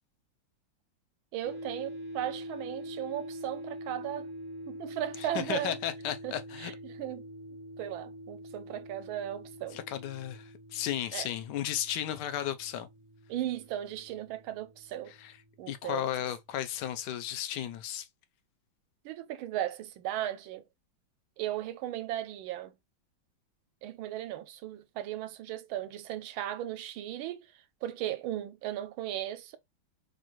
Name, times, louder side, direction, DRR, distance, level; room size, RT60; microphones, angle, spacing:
voice 1, 1.3-4.3 4.7-5.8 6.2-7.3 7.8-9.8 11.1-11.3 13.3-15.1 15.6-16.1 19.0-20.6 21.4-22.7 23.8-29.6, right 12 dB, 85° right, 1.4 m, -36 dB
sound 1, 1.4-16.7, equal, 25° left, 0.6 m, -45 dB
voice 2, 5.2-6.7 9.7-12.9 15.1-15.3 15.7-18.1, left 11 dB, 70° left, 1.1 m, -34 dB
5.0 x 2.4 x 3.0 m
omnidirectional pair, 2.2 m